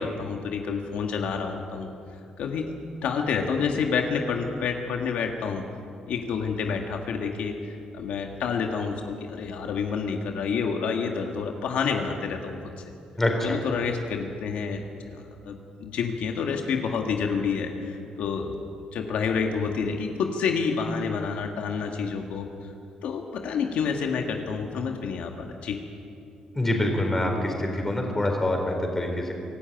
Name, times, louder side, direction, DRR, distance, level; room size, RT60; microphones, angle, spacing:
voice 1, 0.0-1.9 2.4-2.7 3.0-5.6 6.1-12.6 13.4-18.6 18.9-22.5 23.0-25.8, left 5 dB, 80° left, 3 dB, 1.8 m, -28 dB
voice 2, 13.2-13.6 26.5-29.3, left 1 dB, 15° left, 2 dB, 4.1 m, -25 dB
24.0 x 12.5 x 9.2 m, 2.5 s
cardioid pair, 130°, 2 cm